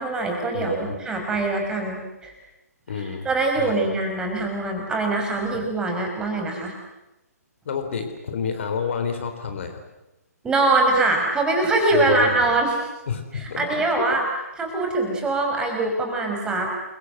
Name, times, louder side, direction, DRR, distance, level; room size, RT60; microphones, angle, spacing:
voice 1, 0.0-2.3 2.9-6.7 10.4-12.7 13.3-14.2 14.6-16.9, right 2 dB, 10° right, 2 dB, 5.5 m, -23 dB
voice 2, 0.5-1.0 2.9-3.3 3.6-3.9 7.7-9.8 11.9-12.4 13.1-14.1, left 6 dB, 45° left, 6 dB, 4.0 m, -29 dB
29.0 x 24.0 x 7.9 m, 0.98 s
figure-of-eight pair, 135°, 9 cm